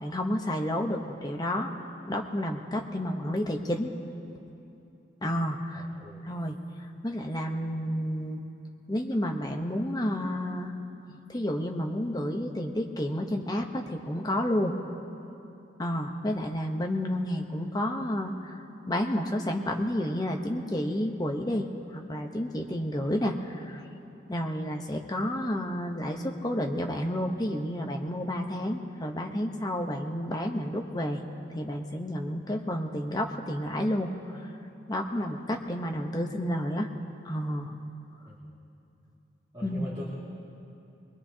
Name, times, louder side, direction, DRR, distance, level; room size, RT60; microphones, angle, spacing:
voice 1, 0.0-1.7 2.1-3.9 5.2-5.9 6.2-6.6 7.0-8.4 8.9-10.7 11.3-14.7 15.8-18.6 18.9-23.8 24.3-31.2 31.5-34.5 34.9-36.9 37.2-37.7 39.6-39.9, equal, 20° left, 2 dB, 0.9 m, -30 dB
voice 2, 5.7-6.2 38.2-38.5 39.5-40.0, left 1 dB, 25° right, -10 dB, 2.3 m, -42 dB
22.5 x 20.5 x 2.8 m, 2.8 s
head